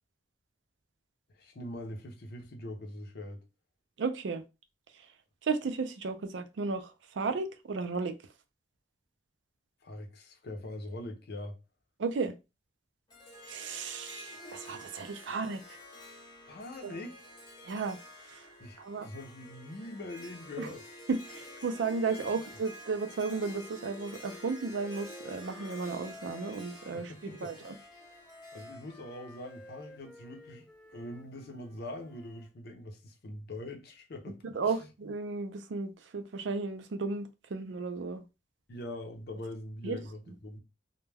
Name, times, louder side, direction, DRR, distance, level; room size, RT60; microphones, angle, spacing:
voice 1, 1.3-3.4 9.8-11.6 16.5-17.2 18.6-20.8 26.9-27.6 28.5-34.9 38.7-40.6, left 1 dB, 60° left, 0.6 m, -43 dB
voice 2, 4.0-4.4 5.4-8.1 12.0-12.3 13.5-15.8 16.8-16.9 17.6-18.0 18.3-18.5 18.8-19.1 20.6-20.7 21.1-27.7 34.4-38.2 39.8-40.0, right 4 dB, 80° right, 0.4 m, -34 dB
Harp, 13.1-30.4, equal, 25° left, 0.8 m, -50 dB
Wind instrument woodwind instrument, 22.4-27.0 27.6-32.5, left 1 dB, 5° left, 0.4 m, -54 dB
2.2 x 2.2 x 3.2 m
head